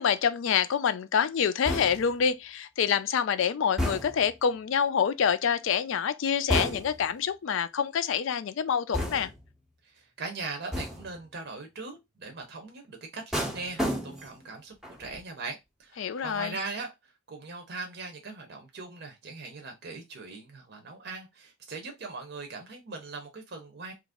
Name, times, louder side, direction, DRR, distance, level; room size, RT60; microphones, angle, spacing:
voice 1, 0.0-9.3 16.0-16.6, left 7 dB, 60° left, 0.3 m, -27 dB
sound 1, 1.6-2.2 3.8-4.4 6.5-7.1 8.9-9.5 10.7-11.2 13.3-14.4 14.8-15.2, equal, ahead, 0.6 m, -32 dB
voice 2, 9.8-23.9, right 3 dB, 50° right, 0.7 m, -40 dB
3.0 x 2.5 x 3.5 m
head